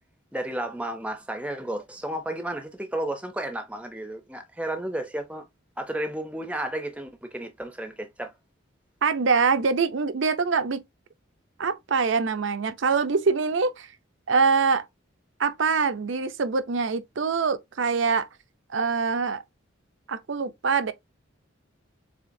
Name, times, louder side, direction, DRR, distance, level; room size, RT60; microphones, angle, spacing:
voice 1, 0.3-5.4 5.8-8.3, right 1 dB, 5° right, 0.6 m, -32 dB
voice 2, 9.0-10.8 11.6-13.9 14.3-14.8 15.4-18.3 18.7-19.4 20.1-20.9, right 5 dB, 65° right, 0.5 m, -24 dB
6.9 x 2.8 x 2.6 m
head